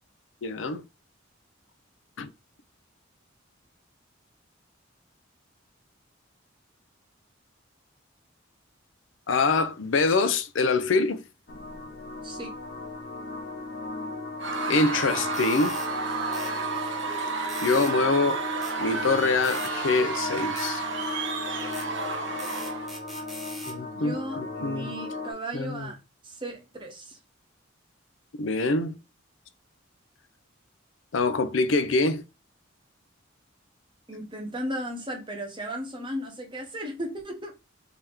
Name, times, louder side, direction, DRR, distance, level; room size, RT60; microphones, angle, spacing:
voice 1, 0.4-0.8 2.2-2.3 9.3-11.2 14.7-15.8 17.6-18.4 18.8-20.8 23.6-24.9 25.5-25.9 28.3-29.0 31.1-32.2, left 3 dB, 70° left, 0.5 m, -25 dB
sound 1, 11.5-25.3, left 3 dB, 55° left, 0.9 m, -37 dB
voice 2, 12.2-12.6 23.9-26.0 26.2-27.2 34.1-37.6, equal, 25° right, 1.1 m, -35 dB
Screaming / Cheering / Crowd, 14.4-23.0, right 4 dB, 65° right, 0.9 m, -31 dB
sound 2, 15.3-15.9 16.3-16.5 17.5-17.9 18.6-18.8 19.4-19.7 20.6-20.7 21.7-21.9 22.4-23.8, equal, ahead, 0.9 m, -42 dB
3.4 x 2.8 x 3.5 m
head